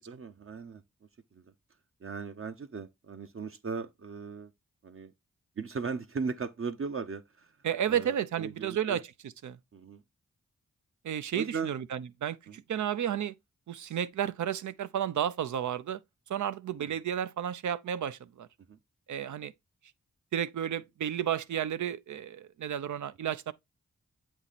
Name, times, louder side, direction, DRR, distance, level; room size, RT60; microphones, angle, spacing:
voice 1, 0.1-0.8 1.3-1.4 2.0-4.5 4.8-5.1 5.6-7.5 7.9-9.0 9.7-10.0 11.3-11.7 12.5-12.6 16.7-17.0 18.7-18.8, right 5 dB, 45° right, 0.7 m, -38 dB
voice 2, 7.6-9.6 11.0-13.3 13.7-16.0 16.3-18.5 19.1-19.5 20.3-23.5, right 9 dB, 80° right, 0.6 m, -32 dB
8.1 x 3.0 x 4.1 m
cardioid pair, 70°, 29 cm